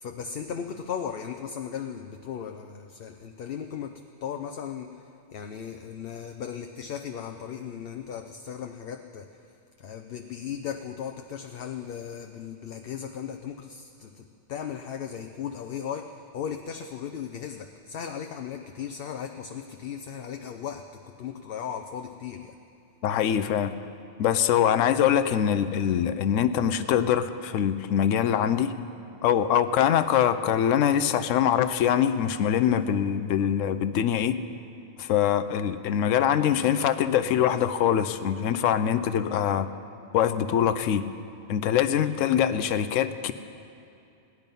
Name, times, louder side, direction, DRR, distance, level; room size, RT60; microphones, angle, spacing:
voice 1, 0.0-4.9 5.3-9.3 9.8-22.5, left 8 dB, 60° left, 6 dB, 0.7 m, -37 dB
voice 2, 23.0-23.8 24.2-28.7 29.2-34.4 35.0-39.7 40.1-41.1 41.5-43.3, left 9 dB, 85° left, 11 dB, 1.0 m, -23 dB
17.5 x 10.5 x 5.4 m, 2.6 s
omnidirectional pair, 1.3 m